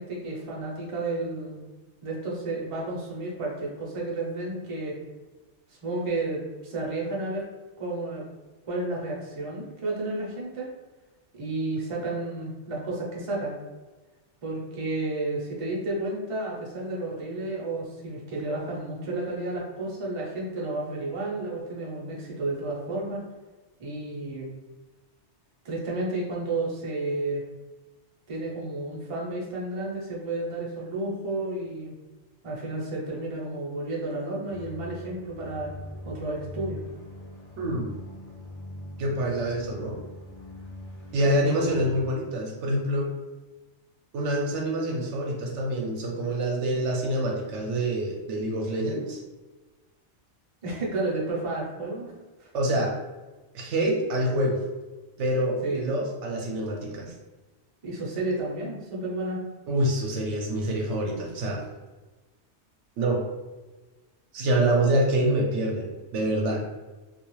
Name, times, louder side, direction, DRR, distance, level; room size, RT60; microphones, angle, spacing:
voice 1, 0.0-1.6 2.0-5.0 5.8-7.5 7.8-8.2 8.7-10.7 11.3-13.6 14.4-23.2 23.8-24.5 25.6-27.4 28.3-32.0 32.4-35.7 36.0-36.8 41.2-41.6 50.6-52.1 52.4-52.5 55.6-55.9 57.8-59.4, right 2 dB, 35° right, -3 dB, 0.6 m, -31 dB
sound 1, 34.5-42.1, left 1 dB, 20° left, 0.7 m, -42 dB
voice 2, 37.6-37.9 39.0-40.0 41.1-43.1 44.1-49.2 52.5-52.9 53.5-54.6 55.2-57.1 59.7-61.7 63.0-63.2 64.3-66.6, right 1 dB, 80° right, 0 dB, 0.9 m, -26 dB
2.4 x 2.4 x 3.0 m, 1.2 s
omnidirectional pair, 1.2 m